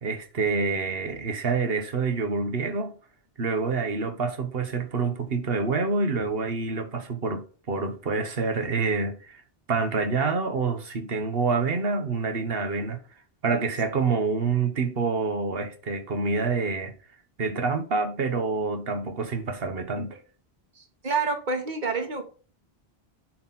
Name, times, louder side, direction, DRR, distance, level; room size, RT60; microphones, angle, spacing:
voice 1, 0.0-2.9 3.4-9.4 9.7-13.0 13.4-16.9 17.4-20.2, right 4 dB, 65° right, 1.4 m, -27 dB
voice 2, 20.8-22.2, right 4 dB, 45° right, 1.6 m, -28 dB
10.0 x 4.1 x 4.2 m
omnidirectional pair, 1.1 m